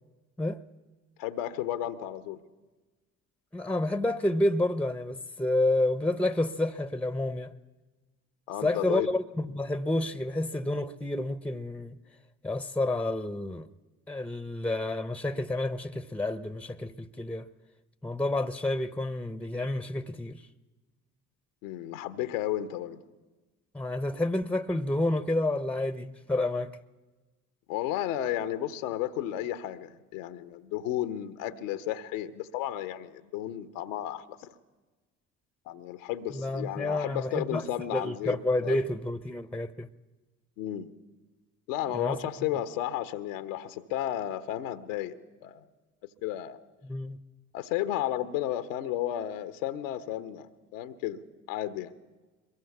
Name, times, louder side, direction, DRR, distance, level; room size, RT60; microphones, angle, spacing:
voice 1, 1.2-2.4 8.5-9.1 21.6-23.0 27.7-34.5 35.7-38.8 40.6-40.9 41.7-45.7 46.2-46.6 47.5-51.2 51.5-51.9, left 12 dB, 75° left, 1.1 m, -33 dB
voice 2, 3.5-7.5 8.6-12.0 12.4-13.7 14.1-17.5 18.0-20.4 23.7-26.7 36.3-37.6 37.9-39.9 41.9-42.2 46.8-47.2, left 1 dB, 5° left, 1.0 m, -29 dB
23.0 x 21.5 x 7.1 m
hypercardioid pair, 55°, 40 cm